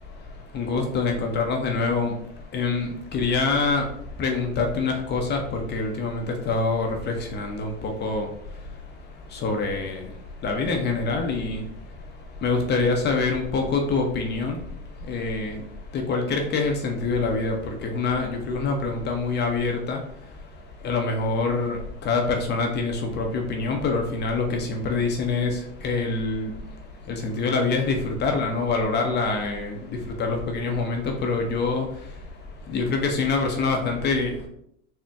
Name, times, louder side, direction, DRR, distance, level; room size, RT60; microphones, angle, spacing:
voice 1, 0.5-2.1 2.5-3.8 4.2-7.7 8.0-8.3 9.4-10.0 10.4-11.6 12.4-14.6 15.1-15.6 15.9-17.5 17.8-20.0 20.8-21.8 22.1-25.5 25.8-26.5 27.2-29.8 30.2-31.9 32.7-34.5, left 3 dB, 30° left, 3 dB, 0.6 m, -25 dB
4.1 x 2.1 x 3.4 m, 0.71 s
hypercardioid pair, 100°, 37 cm